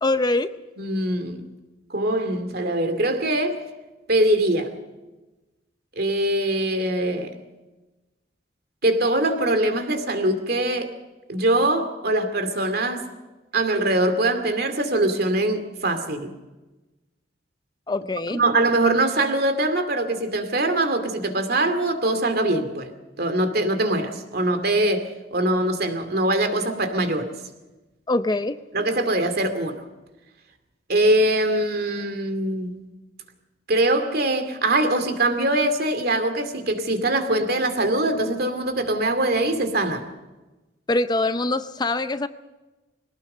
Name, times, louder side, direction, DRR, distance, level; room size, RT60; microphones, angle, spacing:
voice 1, 0.0-0.5 17.9-18.4 28.1-28.6 40.9-42.3, left 2 dB, 25° left, 0.6 m, -23 dB
voice 2, 0.8-1.4 1.9-3.6 4.1-4.7 6.0-7.3 8.8-11.0 11.3-13.1 13.5-16.3 18.3-22.9 23.2-27.3 28.7-29.8 30.9-32.8 33.7-40.1, right 1 dB, 60° right, 2.4 m, -22 dB
22.5 x 18.5 x 6.6 m
head